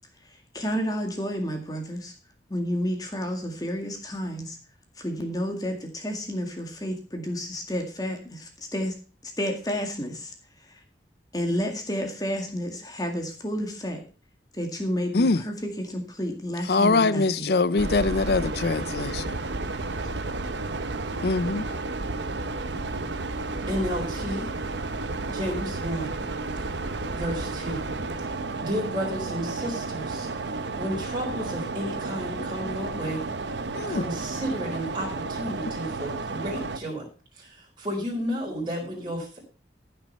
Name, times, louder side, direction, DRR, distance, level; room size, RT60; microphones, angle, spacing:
voice 1, 0.3-2.1 2.5-4.6 5.0-8.9 9.2-10.3 10.7-10.8 11.3-14.0 14.5-17.5, equal, 20° left, 2.0 m, -31 dB
voice 2, 16.7-19.2 21.2-21.6 33.8-34.0, left 3 dB, 65° left, 0.6 m, -23 dB
sound 1, 17.8-36.8, right 3 dB, 85° right, 1.0 m, -32 dB
voice 3, 23.7-24.5 25.3-26.2 27.1-27.9 28.6-33.2 33.9-37.1 37.4-39.4, equal, 25° right, 4.0 m, -32 dB
14.0 x 6.1 x 5.5 m
head